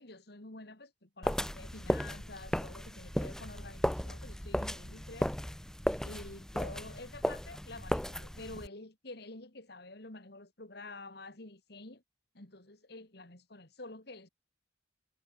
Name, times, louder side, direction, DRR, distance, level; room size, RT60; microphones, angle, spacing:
voice 1, 0.0-5.3 6.0-12.0 12.3-14.3, left 2 dB, 55° left, 2.5 m, -48 dB
sound 1, 1.2-8.7, equal, 5° left, 0.4 m, -35 dB
head